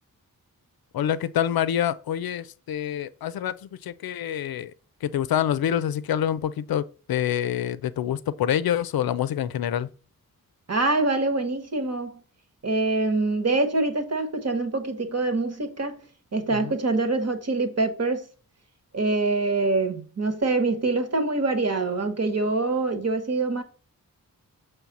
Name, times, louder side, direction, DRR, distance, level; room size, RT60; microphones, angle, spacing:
voice 1, 0.9-3.5 3.8-4.7 5.0-9.9 16.5-16.8, left 10 dB, 85° left, 0.5 m, -26 dB
voice 2, 10.7-12.2 12.6-16.0 16.3-18.3 18.9-23.6, right 3 dB, 45° right, 1.4 m, -25 dB
7.1 x 3.3 x 5.9 m
wide cardioid pair, 120°, 35 cm